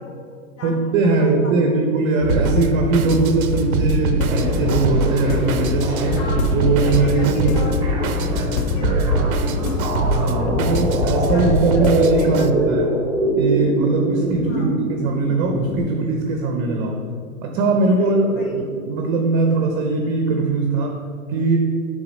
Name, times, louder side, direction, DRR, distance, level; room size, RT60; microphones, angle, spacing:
voice 1, 0.0-1.8 2.7-2.8 6.1-9.8 10.3-10.8 11.2-12.7 14.5-14.8 18.0-18.6, left 3 dB, 55° left, 1 dB, 1.4 m, -39 dB
voice 2, 0.6-6.2 6.5-7.5 10.1-12.9 13.4-17.0 17.4-21.0 21.3-21.6, right 3 dB, 35° right, 2 dB, 0.8 m, -20 dB
sound 1, 2.2-12.0, left 5 dB, 25° left, 0.4 m, -24 dB
Drum kit, 2.3-12.5, right 5 dB, 75° right, 0.6 m, -25 dB
sound 2, 4.2-15.8, right 2 dB, 10° right, 1.2 m, -25 dB
6.9 x 3.6 x 5.3 m, 2.2 s
hypercardioid pair, 110°, 42 cm